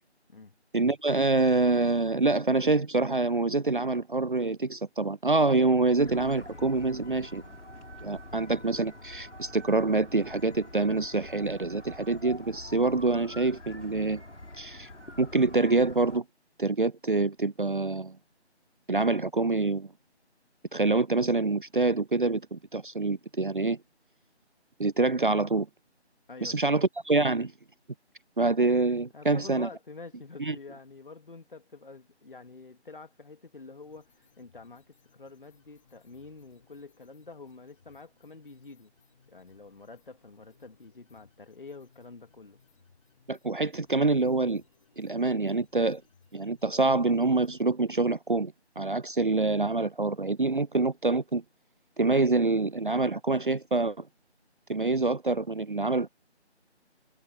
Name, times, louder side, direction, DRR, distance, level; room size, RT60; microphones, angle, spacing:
voice 1, 0.7-7.4 8.0-14.2 14.6-14.9 15.2-16.2 16.6-18.2 18.9-19.9 20.7-23.8 24.8-25.7 26.4-27.5 28.4-29.7 30.4-30.6 43.3-44.6 45.0-46.0 46.3-51.4 52.0-54.1 54.7-56.1, right 3 dB, 50° right, 0.5 m, -26 dB
sound 1, 6.0-16.2, left 1 dB, 90° left, 4.5 m, -46 dB
voice 2, 26.3-26.8 29.1-38.9 39.3-42.6, left 3 dB, 50° left, 2.7 m, -47 dB
sound 2, 33.8-47.6, left 5 dB, 30° left, 5.6 m, -65 dB
figure-of-eight pair, 165°, 34 cm